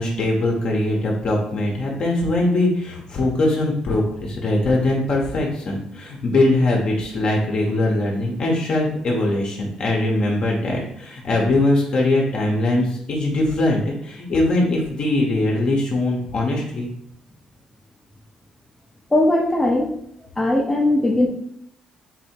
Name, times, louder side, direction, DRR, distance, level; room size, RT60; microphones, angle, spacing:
voice 1, 0.0-16.9, left 2 dB, 50° left, -1 dB, 0.9 m, -21 dB
voice 2, 19.1-19.9 20.4-21.3, left 1 dB, 15° left, 1 dB, 0.7 m, -19 dB
4.1 x 2.7 x 4.4 m, 0.70 s
cardioid pair, 115°, 2 cm